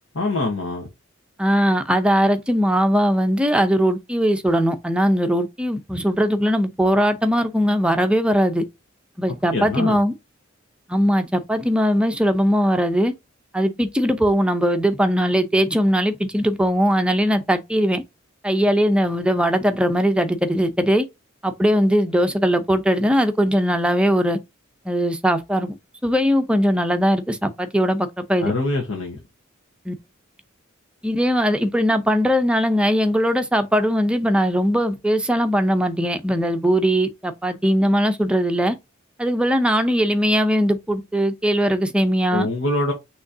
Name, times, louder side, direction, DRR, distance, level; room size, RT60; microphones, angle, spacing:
voice 1, 0.1-0.9 9.5-10.0 28.4-29.2 42.3-42.9, left 2 dB, 70° left, 1.3 m, -24 dB
voice 2, 1.4-8.6 9.2-10.1 10.9-13.1 13.5-18.0 18.4-21.1 21.4-24.4 24.9-25.8 26.0-28.5 29.9-30.0 31.0-38.8 39.2-42.5, equal, 5° right, 0.6 m, -20 dB
6.2 x 3.1 x 2.7 m
head